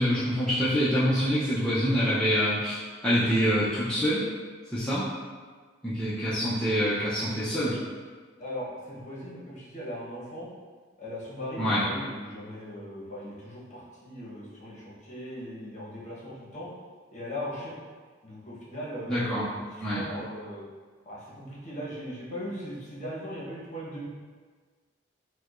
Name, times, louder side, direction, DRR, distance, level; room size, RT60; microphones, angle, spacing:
voice 1, 0.0-2.8 3.0-4.3 4.7-5.0 5.8-7.8 11.6-11.8 19.1-19.4 19.8-20.0, equal, 5° left, -11 dB, 0.4 m, -25 dB
voice 2, 8.4-10.5 11.0-16.7 17.1-17.8 18.2-20.6 21.0-24.1, equal, 35° left, -7 dB, 0.9 m, -39 dB
4.4 x 2.1 x 2.4 m, 1.5 s
head